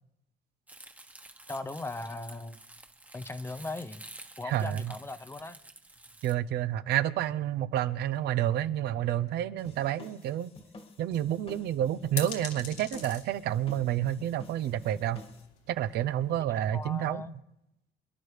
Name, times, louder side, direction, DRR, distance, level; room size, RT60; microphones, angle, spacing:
Crumpling crinkling, 0.7-6.3, right 2 dB, 10° right, 1.2 m, -51 dB
voice 1, 1.5-2.6 3.1-4.0 4.4-5.6 16.4-17.3, left 2 dB, 15° left, 12 dB, 0.7 m, -39 dB
voice 2, 4.5-4.9 6.2-10.5 11.0-15.2 15.7-17.3, right 12 dB, 75° right, 13 dB, 0.7 m, -29 dB
sound 1, 9.6-15.5, left 2 dB, 35° left, 1.8 m, -50 dB
sound 2, 11.2-16.4, left 6 dB, 75° left, 3.9 m, -45 dB
26.5 x 11.0 x 3.3 m, 0.85 s
cardioid pair, 110°, 17 cm